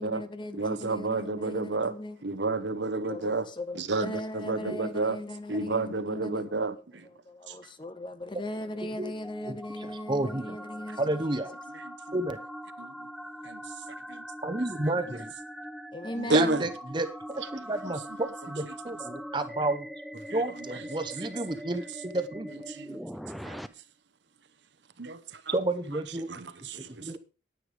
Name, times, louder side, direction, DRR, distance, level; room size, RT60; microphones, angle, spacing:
voice 1, 0.0-2.2 2.5-11.2 15.0-15.1 15.9-16.6, left 1 dB, 25° left, 0.8 m, -39 dB
voice 2, 0.6-1.9 2.2-3.4 3.8-5.2 5.5-6.7 7.5-7.6 12.8-12.9 13.4-13.6 14.1-14.3 16.2-16.7 22.7-23.0 23.4-23.6 25.0-25.5 26.3-27.1, right 3 dB, 75° right, 1.0 m, -30 dB
sound 1, 8.6-23.7, equal, ahead, 0.4 m, -42 dB
voice 3, 9.8-10.6 11.0-11.5 12.1-12.4 14.4-15.3 16.3-19.9 20.3-22.6 25.5-26.3 27.0-27.2, right 2 dB, 25° right, 0.9 m, -31 dB
9.9 x 9.7 x 5.0 m
head